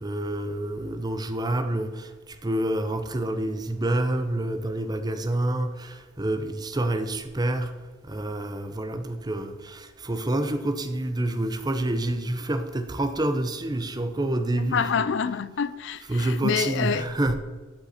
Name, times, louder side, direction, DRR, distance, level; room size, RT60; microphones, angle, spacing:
voice 1, 0.0-7.7 8.1-15.1 16.1-17.4, right 1 dB, 20° right, 0.7 m, -28 dB
voice 2, 14.6-17.1, left 6 dB, 65° left, 0.5 m, -27 dB
12.0 x 5.6 x 4.3 m
head